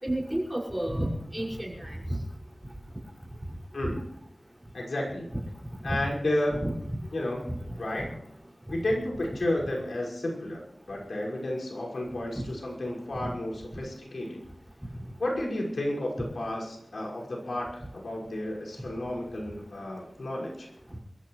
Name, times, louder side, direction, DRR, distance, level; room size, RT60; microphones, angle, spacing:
voice 1, 0.0-2.0 5.3-5.4 5.9-6.0 6.5-7.0 7.5-7.6 8.0-8.1 12.4-12.5, right 1 dB, 10° right, -2 dB, 5.9 m, -31 dB
voice 2, 3.7-4.0 4.7-5.3 5.8-6.6 7.1-7.4 7.8-8.1 8.7-14.4 15.2-20.7, left 1 dB, 80° left, -2 dB, 5.8 m, -32 dB
28.0 x 14.5 x 3.2 m, 0.75 s
wide cardioid pair, 70°, 0 cm